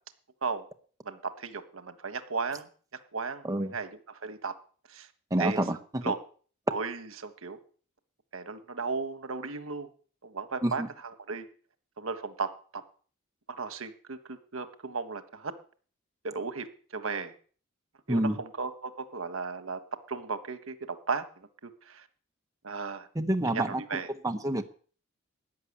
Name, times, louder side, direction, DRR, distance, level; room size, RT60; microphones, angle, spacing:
voice 1, 1.0-2.7 3.1-4.5 4.9-5.1 5.4-5.6 6.0-6.2 6.7-7.6 8.3-9.9 10.2-11.4 12.0-12.8 13.6-15.5 16.2-16.7 16.9-17.3 18.1-19.8 20.1-22.0 22.6-23.1 23.5-24.1, right 4 dB, 80° right, 9 dB, 1.4 m, -35 dB
voice 2, 5.3-6.0 10.6-10.9 18.1-18.4 23.1-24.0 24.2-24.6, right 1 dB, 15° right, 6 dB, 1.0 m, -28 dB
14.0 x 6.7 x 10.0 m, 0.43 s
head